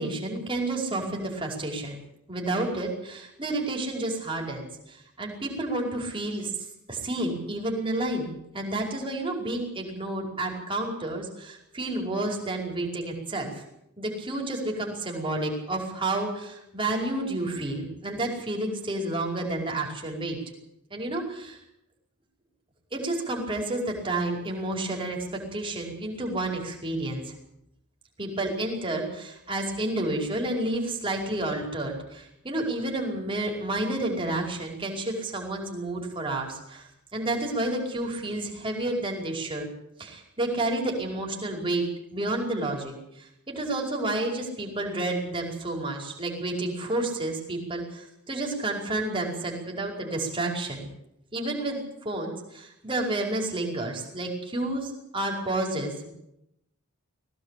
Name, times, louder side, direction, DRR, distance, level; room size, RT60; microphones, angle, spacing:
voice 1, 0.0-2.0 2.3-6.5 6.9-13.6 14.0-20.4 20.9-21.6 22.9-25.2 25.5-27.3 28.2-36.8 37.1-39.7 40.0-41.9 42.1-50.9 51.3-56.1, right 2 dB, 25° right, 0 dB, 5.1 m, -30 dB
21.0 x 17.5 x 8.5 m, 0.81 s
head